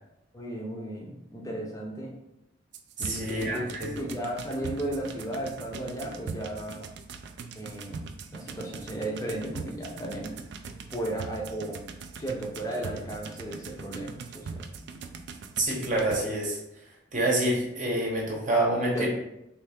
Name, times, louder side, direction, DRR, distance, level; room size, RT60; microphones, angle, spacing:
voice 1, 0.3-2.2 3.0-6.9 7.5-8.0 8.3-10.4 10.9-11.8 12.1-14.6 18.9-19.1, right 1 dB, 20° left, -1 dB, 0.6 m, -35 dB
sound 1, 2.7-16.2, right 5 dB, 60° right, 0.3 m, -41 dB
voice 2, 3.0-4.0 15.6-16.6 17.1-19.1, right 1 dB, 40° right, -2 dB, 0.9 m, -27 dB
3.3 x 2.8 x 3.4 m, 0.85 s
head